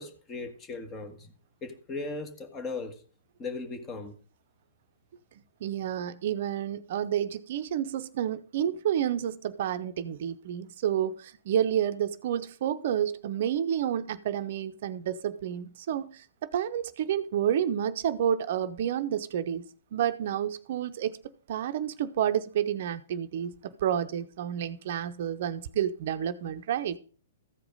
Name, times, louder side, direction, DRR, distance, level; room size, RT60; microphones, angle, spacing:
voice 1, 0.0-1.3 1.6-3.0 3.4-4.2, left 3 dB, 25° left, 1.6 m, -37 dB
voice 2, 5.6-19.7 19.9-21.1 21.5-27.0, right 10 dB, 55° right, 0.6 m, -30 dB
14.5 x 4.9 x 5.4 m
hypercardioid pair, 120°, 0 cm